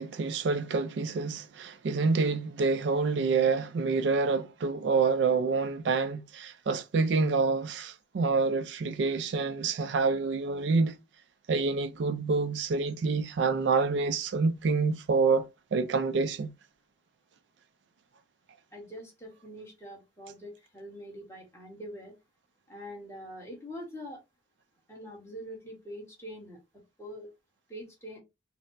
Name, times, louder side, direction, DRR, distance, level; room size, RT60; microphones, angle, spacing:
voice 1, 0.0-11.0 11.5-15.5 15.7-16.5, right 4 dB, 70° right, 0.4 m, -27 dB
voice 2, 18.7-22.1 22.7-24.2 24.9-26.6 27.0-27.3 27.7-28.2, equal, 15° left, 1.1 m, -44 dB
4.1 x 2.0 x 2.5 m
head